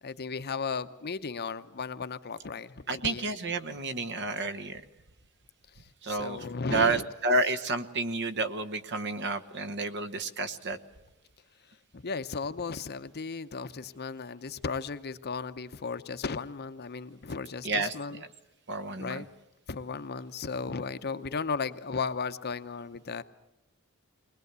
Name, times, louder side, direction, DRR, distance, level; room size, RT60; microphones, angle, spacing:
voice 1, 0.0-3.3 5.7-7.1 11.9-18.2 19.0-19.3 19.7-23.2, left 5 dB, 45° left, 11 dB, 0.8 m, -35 dB
voice 2, 2.9-4.8 6.0-10.8 17.6-18.2 18.7-19.3, right 3 dB, 50° right, 11 dB, 1.1 m, -30 dB
21.0 x 20.5 x 8.1 m, 0.92 s
head